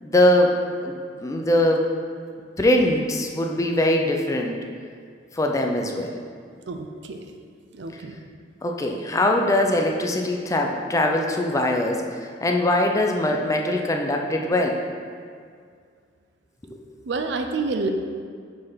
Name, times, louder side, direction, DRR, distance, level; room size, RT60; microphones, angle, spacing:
voice 1, 0.0-0.6 0.8-1.9 2.6-4.6 5.3-6.2 8.6-14.8 16.6-16.8, left 1 dB, 15° left, 2 dB, 0.4 m, -22 dB
voice 2, 6.7-7.3 7.7-8.2 17.1-17.9, right 3 dB, 65° right, 5 dB, 0.5 m, -28 dB
5.3 x 4.1 x 5.6 m, 2.1 s
head